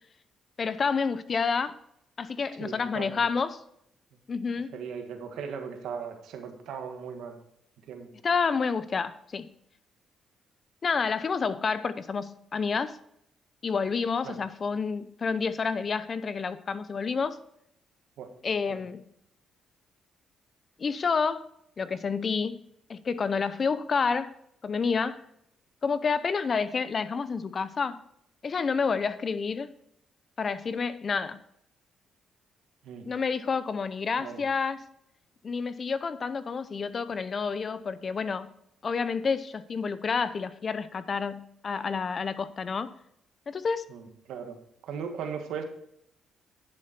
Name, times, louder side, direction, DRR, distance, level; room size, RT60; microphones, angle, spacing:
voice 1, 0.6-1.8 2.2-3.6 4.3-4.7 8.2-9.5 10.8-13.0 13.6-17.4 18.4-19.0 20.8-21.5 21.8-22.6 22.9-24.3 24.6-25.2 25.8-28.0 28.4-29.7 30.4-31.4 33.1-34.9 35.4-38.5 38.8-42.9 43.5-43.9, left 5 dB, 40° left, 14 dB, 0.7 m, -29 dB
voice 2, 2.6-3.2 4.7-7.4 7.9-8.1 14.2-14.4 18.2-18.3 18.7-18.8 32.8-33.0 34.2-34.4 43.9-44.6 44.8-45.6, right 6 dB, 80° right, 5 dB, 1.6 m, -38 dB
10.5 x 7.6 x 4.4 m, 0.75 s
cardioid pair, 90°, 0 cm